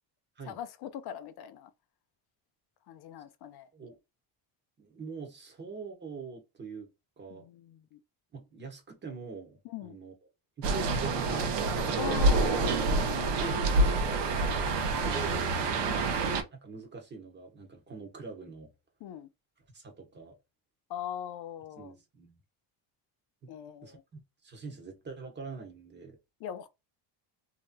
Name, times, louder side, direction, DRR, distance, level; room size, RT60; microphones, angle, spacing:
voice 1, 0.5-1.7 2.9-3.7 7.3-8.0 9.6-10.0 12.0-12.7 13.2-13.5 14.3-14.6 15.9-16.1 19.0-19.3 20.9-21.9 23.5-24.0 26.4-26.7, left 11 dB, 55° left, 0.5 m, -41 dB
voice 2, 4.8-6.9 7.2-7.5 8.3-10.1 10.6-12.4 13.3-14.2 15.0-15.5 16.5-18.7 19.7-20.4 21.8-22.4 23.4-23.5 23.8-26.2, right 4 dB, 20° right, 1.0 m, -44 dB
sound 1, 10.6-16.4, right 2 dB, 60° right, 0.8 m, -27 dB
3.1 x 2.8 x 2.2 m
cardioid pair, 145°, 49 cm